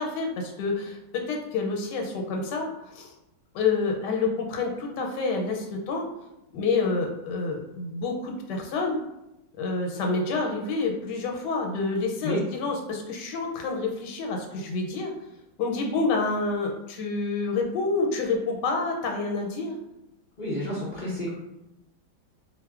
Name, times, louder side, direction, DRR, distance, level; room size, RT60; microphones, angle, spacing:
voice 1, 0.0-3.1 3.5-6.1 6.5-9.0 9.6-15.1 15.6-19.8, left 3 dB, 90° left, 1 dB, 1.2 m, -28 dB
voice 2, 20.4-21.3, left 1 dB, 50° left, -9 dB, 0.6 m, -30 dB
4.4 x 2.1 x 2.3 m, 0.90 s
omnidirectional pair, 1.8 m